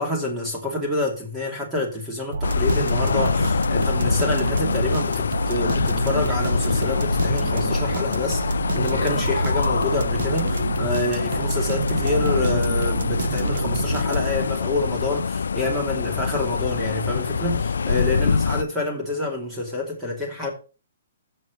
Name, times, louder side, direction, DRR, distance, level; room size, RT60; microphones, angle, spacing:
voice 1, 0.0-20.5, left 2 dB, 10° right, 2.6 m, -27 dB
sound 1, 2.3-14.6, right 4 dB, 75° right, 1.0 m, -28 dB
sound 2, 2.4-18.6, left 5 dB, 85° left, 0.4 m, -25 dB
7.2 x 6.8 x 6.4 m
hypercardioid pair, 150°, 0 cm